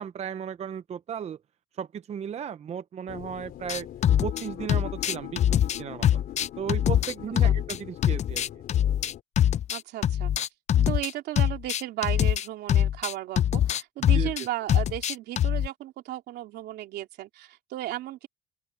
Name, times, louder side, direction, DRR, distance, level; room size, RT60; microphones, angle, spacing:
voice 1, 0.0-1.4 1.7-3.9 4.2-6.1 6.6-8.4 14.1-14.3, right 8 dB, 40° right, 0.7 m, -35 dB
sound 1, 3.1-9.2, left 12 dB, 65° left, 3.4 m, -41 dB
sound 2, 3.7-4.4 4.7-7.8 8.0-11.1 11.4-15.7, left 10 dB, 40° left, 0.5 m, -23 dB
voice 2, 9.7-10.3 10.7-18.3, right 14 dB, 75° right, 3.2 m, -35 dB
open air
cardioid pair, 110°, 17 cm